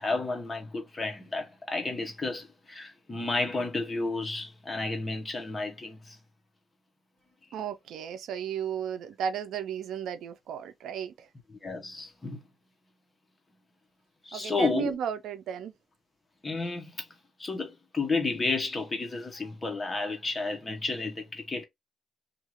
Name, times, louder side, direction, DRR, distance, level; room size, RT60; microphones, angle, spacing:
voice 1, 0.0-6.2 11.5-12.4 14.2-15.0 16.4-17.1 17.4-21.6, left 3 dB, 25° left, 0.9 m, -32 dB
voice 2, 7.5-11.3 14.3-15.8, right 8 dB, 85° right, 0.4 m, -34 dB
2.7 x 2.4 x 2.9 m
cardioid pair, 115°, 0 cm